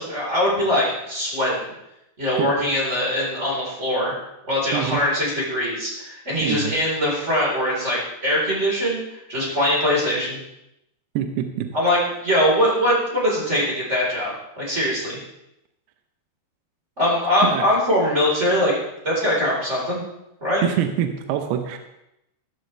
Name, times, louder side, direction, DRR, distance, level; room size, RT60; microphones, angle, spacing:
voice 1, 0.0-1.7 2.2-4.1 4.5-10.4 11.7-14.3 14.6-15.2 17.0-18.7 19.0-20.0 20.4-20.6, left 1 dB, 15° right, -5 dB, 4.2 m, -22 dB
voice 2, 4.7-5.0 6.4-6.7 11.2-11.7 17.4-17.7 20.6-21.8, right 9 dB, 75° right, 6 dB, 2.8 m, -25 dB
14.5 x 13.0 x 3.4 m, 0.85 s
omnidirectional pair, 4.7 m